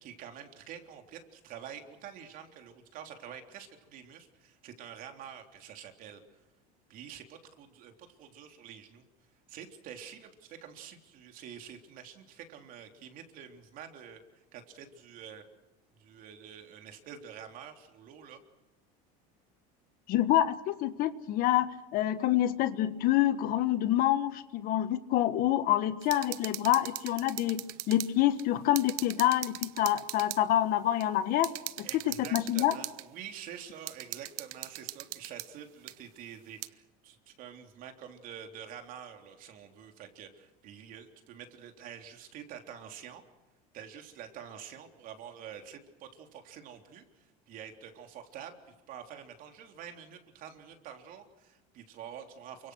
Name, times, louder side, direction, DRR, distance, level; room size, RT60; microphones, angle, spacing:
voice 1, 0.0-6.2 6.9-9.0 9.5-14.2 14.5-15.4 16.0-18.4 31.8-43.2 43.7-52.7, right 8 dB, 50° right, 5 dB, 3.5 m, -47 dB
voice 2, 20.1-31.5 31.8-31.9 32.3-32.7, left 13 dB, 50° left, 12 dB, 1.5 m, -27 dB
sound 1, 26.0-28.1 28.4-28.5 28.7-30.4 31.0-31.1 31.4-33.0 33.9-35.5 35.9-36.0 36.6-36.7, right 20 dB, 75° right, 1.0 m, -39 dB
29.0 x 25.0 x 6.3 m, 1.0 s
cardioid pair, 150°, 18 cm